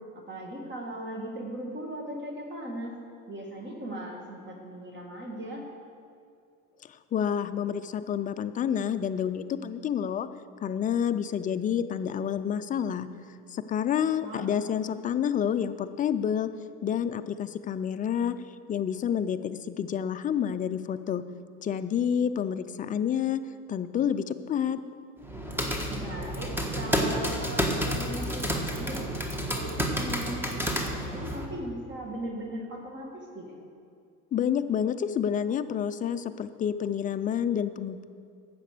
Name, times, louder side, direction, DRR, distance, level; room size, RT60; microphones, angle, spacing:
voice 1, 0.1-2.9 3.3-5.6 14.2-14.5 25.9-29.1 29.5-33.6, right 1 dB, 30° right, 0 dB, 2.0 m, -38 dB
voice 2, 6.8-10.3 10.6-13.1 13.5-16.5 16.8-18.3 18.7-21.2 21.6-23.4 23.7-24.8 34.3-38.0, left 8 dB, 20° left, 10 dB, 0.4 m, -29 dB
sound 1, 25.2-31.4, equal, 5° right, 1.2 m, -30 dB
10.0 x 7.5 x 6.7 m, 2.3 s
supercardioid pair, 110°, 39 cm